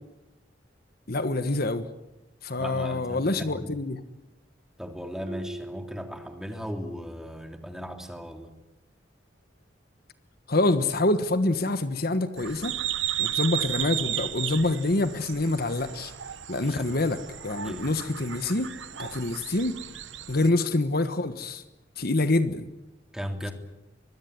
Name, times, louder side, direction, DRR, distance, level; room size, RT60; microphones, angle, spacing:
voice 1, 1.1-1.9 2.4-4.0 10.5-12.7 13.2-16.1 16.5-17.2 17.4-18.7 19.0-19.8 20.3-21.6 22.0-22.7, left 2 dB, 55° left, 10 dB, 1.4 m, -26 dB
voice 2, 2.5-3.7 4.8-8.5 16.6-16.9 17.6-17.9 23.1-23.5, equal, 5° right, 5 dB, 3.0 m, -37 dB
Marimba xylophone, 5.3-7.0, right 1 dB, 25° right, 1.5 m, -42 dB
sound 1, 12.4-20.5, right 11 dB, 90° right, 1.0 m, -34 dB
24.5 x 21.5 x 9.7 m, 0.93 s
head